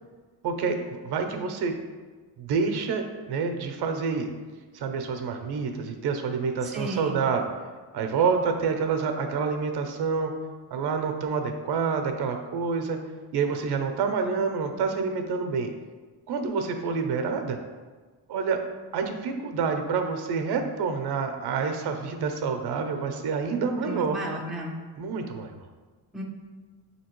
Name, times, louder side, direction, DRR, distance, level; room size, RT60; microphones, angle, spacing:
voice 1, 0.4-0.8 1.0-1.7 2.4-4.3 4.7-7.5 7.9-10.3 10.7-13.0 13.3-15.7 16.3-17.6 18.3-18.6 18.9-24.2 25.0-25.6, right 5 dB, 60° right, 5 dB, 0.6 m, -27 dB
voice 2, 6.6-7.2 23.8-24.8 26.1-26.2, right 1 dB, ahead, -2 dB, 0.4 m, -34 dB
5.5 x 2.8 x 3.0 m, 1.4 s
cardioid pair, 115°, 44 cm